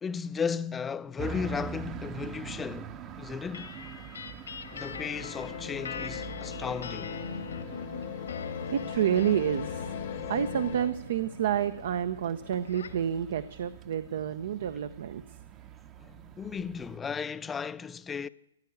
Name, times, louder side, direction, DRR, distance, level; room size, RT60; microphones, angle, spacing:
voice 1, 0.0-3.7 4.7-7.2 16.0-18.3, left 6 dB, 15° left, 0.5 m, -35 dB
sound 1, 1.2-17.0, right 7 dB, 25° right, 0.8 m, -45 dB
sound 2, 3.5-13.1, left 5 dB, 80° left, 1.8 m, -43 dB
sound 3, 4.6-10.9, left 9 dB, 60° left, 1.1 m, -39 dB
voice 2, 8.4-9.9 10.3-15.4, right 9 dB, 60° right, 0.7 m, -29 dB
15.5 x 9.5 x 8.0 m
hypercardioid pair, 135°, 0 cm